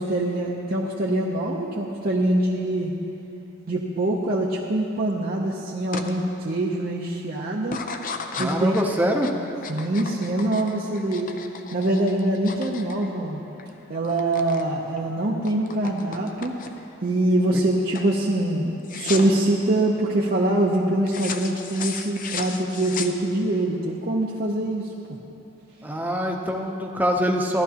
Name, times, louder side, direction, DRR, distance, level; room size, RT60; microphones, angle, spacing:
voice 1, 0.0-2.9 3.7-7.8 8.4-8.9 9.7-11.3 11.7-13.4 13.9-16.6 17.0-25.2, right 1 dB, 45° right, -4 dB, 0.7 m, -24 dB
sound 1, 5.9-6.1 6.6-7.0 7.6-13.7 13.9-14.7 15.0-16.9 17.4-17.7 17.9-18.2 18.8-19.5 21.1-23.6, left 5 dB, 40° left, 0.5 m, -35 dB
voice 2, 8.3-9.3 17.5-17.6 25.8-27.6, equal, 10° right, 1 dB, 0.7 m, -24 dB
15.0 x 11.5 x 2.9 m, 2.9 s
head